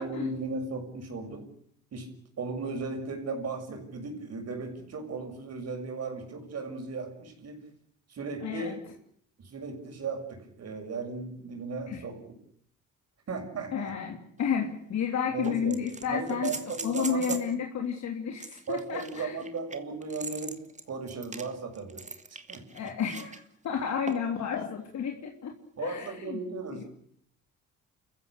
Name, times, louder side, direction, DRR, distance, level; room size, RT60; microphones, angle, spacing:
voice 1, 0.0-1.5 1.9-7.7 8.1-8.8 9.4-12.2 13.3-13.9 15.3-17.4 18.7-20.6 20.9-22.1 22.5-22.9 25.8-26.9, right 4 dB, 55° right, 4 dB, 6.9 m, -36 dB
voice 2, 8.4-8.8 11.9-12.0 13.7-19.4 22.7-25.5 25.8-26.4 26.7-26.8, left 7 dB, 65° left, 3 dB, 3.3 m, -32 dB
sound 1, 14.4-14.5 15.4-17.5 18.4-23.4 24.1-24.4 26.1-26.2, right 3 dB, 25° right, 2.4 m, -41 dB
29.5 x 15.0 x 8.2 m, 0.65 s
cardioid pair, 90°, 30 cm